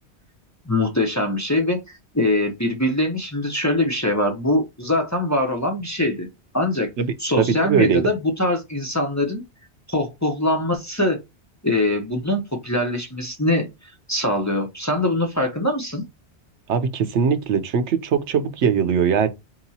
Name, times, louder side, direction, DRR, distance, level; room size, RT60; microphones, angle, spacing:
voice 1, 0.6-6.3 6.5-6.9 7.2-9.4 9.9-11.2 11.6-13.7 14.1-16.0, left 1 dB, 15° left, 0.8 m, -23 dB
voice 2, 7.0-8.0 16.7-19.3, right 7 dB, 85° right, 1.0 m, -21 dB
4.5 x 2.9 x 2.7 m
omnidirectional pair, 1.1 m